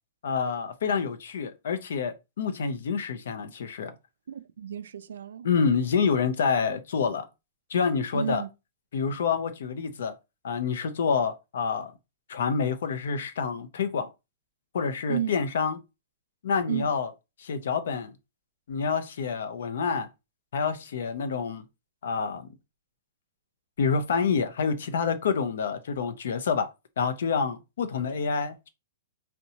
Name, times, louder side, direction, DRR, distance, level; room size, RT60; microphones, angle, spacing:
voice 1, 0.2-3.9 5.4-7.3 7.7-8.4 8.9-10.1 10.4-11.9 12.3-14.1 14.7-15.8 16.4-17.1 17.4-18.1 18.7-20.1 20.5-21.6 22.0-22.5 23.8-26.7 27.0-28.7, left 5 dB, 65° left, 0.5 m, -27 dB
voice 2, 4.3-5.5 8.1-8.5 15.1-15.4 16.7-16.9, right 9 dB, 85° right, 0.3 m, -32 dB
2.7 x 2.1 x 2.7 m
hypercardioid pair, 175°, 0 cm